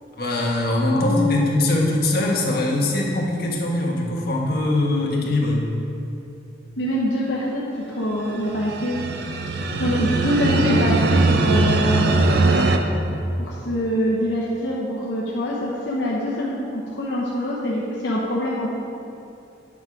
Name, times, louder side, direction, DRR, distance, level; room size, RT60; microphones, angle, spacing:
voice 1, 0.2-5.7, left 2 dB, 55° left, -2 dB, 1.4 m, -22 dB
voice 2, 0.9-1.5 6.8-9.0 9.8-12.2 13.4-18.7, left 1 dB, 75° left, -5 dB, 1.0 m, -24 dB
sound 1, 8.2-12.8, right 3 dB, 60° right, 0.6 m, -20 dB
9.4 x 4.8 x 5.9 m, 2.7 s
head